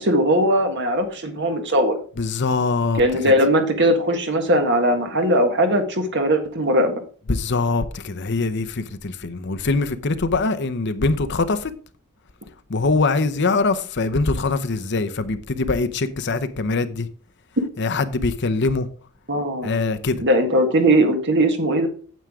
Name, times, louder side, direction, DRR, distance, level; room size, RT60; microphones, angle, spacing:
voice 1, 0.0-2.0 3.0-7.0 19.3-19.8 20.2-21.9, right 1 dB, 55° right, 1.7 m, -19 dB
voice 2, 2.2-3.3 7.3-11.7 12.7-17.1 17.8-18.9 19.6-20.2, left 3 dB, 55° left, 0.8 m, -23 dB
9.2 x 8.1 x 3.7 m
head